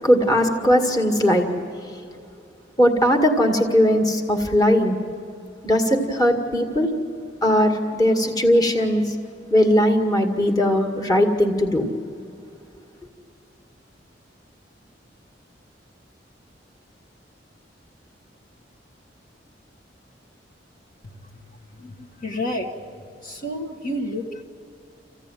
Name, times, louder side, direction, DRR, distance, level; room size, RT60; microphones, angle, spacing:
voice 1, 0.0-1.5 2.8-5.0 5.6-6.9 7.4-9.0 9.5-11.9, equal, 20° left, 3 dB, 2.0 m, -19 dB
voice 2, 21.0-21.4 21.7-22.7 23.2-24.4, left 1 dB, 50° left, 0 dB, 1.6 m, -30 dB
27.5 x 16.0 x 9.1 m, 2.6 s
head